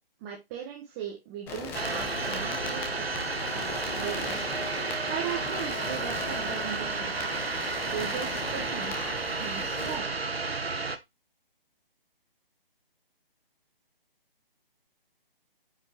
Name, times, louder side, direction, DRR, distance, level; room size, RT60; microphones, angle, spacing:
voice 1, 0.2-3.0 3.5-4.5 4.8-7.1 7.9-9.1 9.4-10.1, right 8 dB, 15° right, -1 dB, 1.3 m, -38 dB
sound 1, 1.5-10.0, left 4 dB, 5° left, 0.8 m, -38 dB
sound 2, 1.7-11.0, right 4 dB, 90° right, 1.4 m, -32 dB
9.4 x 5.2 x 2.9 m, 0.21 s
figure-of-eight pair, 155°, 30 cm